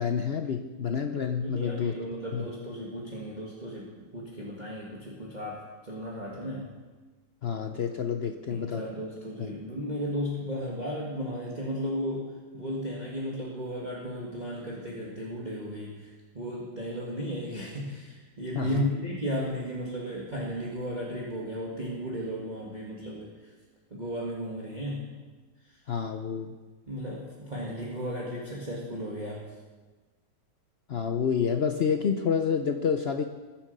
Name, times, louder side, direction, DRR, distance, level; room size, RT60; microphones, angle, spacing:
voice 1, 0.0-1.9 2.3-2.5 7.4-8.9 9.4-9.5 18.5-18.9 25.9-26.5 30.9-33.2, left 7 dB, 75° left, 6 dB, 0.5 m, -28 dB
voice 2, 1.4-3.9 4.1-6.7 8.5-12.3 12.5-16.1 16.3-23.5 23.9-25.1 26.9-29.5, equal, 25° right, -5 dB, 1.9 m, -35 dB
21.0 x 7.4 x 5.3 m, 1.3 s
omnidirectional pair, 1.9 m